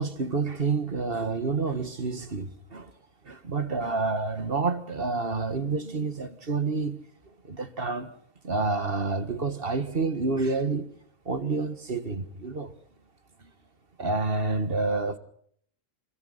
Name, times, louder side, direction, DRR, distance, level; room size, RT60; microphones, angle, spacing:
voice 1, 0.0-2.9 3.3-7.0 7.4-8.1 8.4-10.9 11.3-12.7 14.0-15.2, right 3 dB, 40° right, 1.8 m, -28 dB
28.5 x 26.5 x 4.1 m
omnidirectional pair, 1.5 m